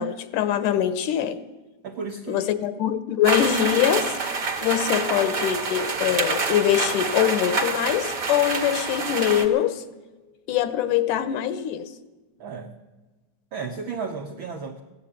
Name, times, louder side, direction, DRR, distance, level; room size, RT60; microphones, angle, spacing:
voice 1, 0.0-1.4 2.3-4.1 4.6-9.8 10.5-11.9, left 11 dB, 80° left, 13 dB, 2.4 m, -23 dB
voice 2, 1.8-2.5 12.4-12.7 13.5-14.8, right 5 dB, 75° right, 2 dB, 1.1 m, -33 dB
sound 1, 3.2-9.5, right 4 dB, 35° right, 1.5 m, -27 dB
16.0 x 10.5 x 8.6 m, 1.2 s
omnidirectional pair, 3.6 m